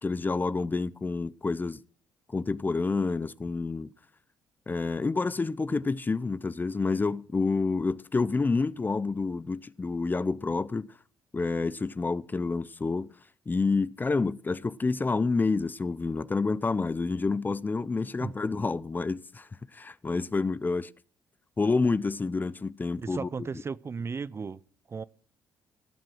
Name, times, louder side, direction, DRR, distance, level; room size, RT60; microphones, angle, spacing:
voice 1, 0.0-1.8 2.3-3.9 4.7-10.9 11.3-13.1 13.5-20.9 21.6-23.3, left 3 dB, 25° left, 0.6 m, -28 dB
voice 2, 23.0-24.6 24.9-25.0, right 5 dB, 35° right, 0.6 m, -35 dB
17.0 x 7.5 x 6.1 m
supercardioid pair, 65°, 7 cm